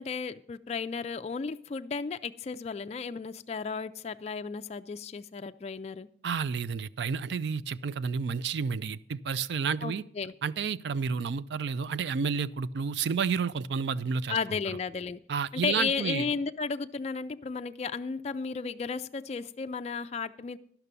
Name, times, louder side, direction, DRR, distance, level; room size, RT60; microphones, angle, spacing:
voice 1, 0.0-6.1 9.8-10.3 14.3-15.2 15.5-20.6, left 5 dB, 35° left, 10 dB, 0.3 m, -34 dB
voice 2, 6.2-10.0 10.4-14.4 15.3-16.3, right 5 dB, 70° right, 17 dB, 0.4 m, -30 dB
12.5 x 5.9 x 6.8 m, 0.68 s
head